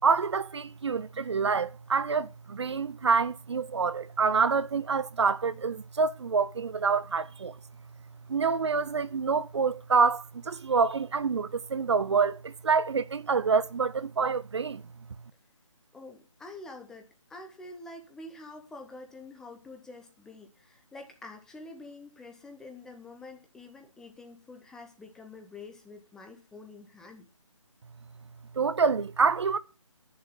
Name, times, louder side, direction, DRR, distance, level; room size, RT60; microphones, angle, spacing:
voice 1, 0.0-7.6 8.3-14.8 28.6-29.6, right 5 dB, 55° right, 0.6 m, -27 dB
voice 2, 15.9-27.3, left 2 dB, 5° left, 0.7 m, -47 dB
10.0 x 6.8 x 6.0 m
figure-of-eight pair, 155°, 17 cm